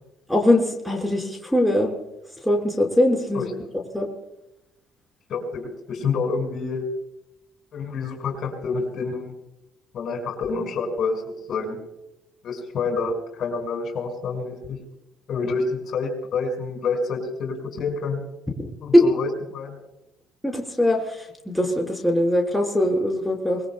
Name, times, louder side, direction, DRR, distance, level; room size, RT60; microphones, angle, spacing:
voice 1, 0.3-1.9 2.4-3.5 3.9-4.1 18.6-18.7 18.9-19.0 20.4-23.6, left 1 dB, 5° left, 0 dB, 4.8 m, -21 dB
voice 2, 5.3-6.8 7.7-9.3 9.9-11.2 11.5-11.8 12.4-14.8 15.3-18.2 18.8-19.8, left 4 dB, 60° left, 3 dB, 5.8 m, -28 dB
24.5 x 22.0 x 2.3 m, 0.89 s
supercardioid pair, 85°, 0 cm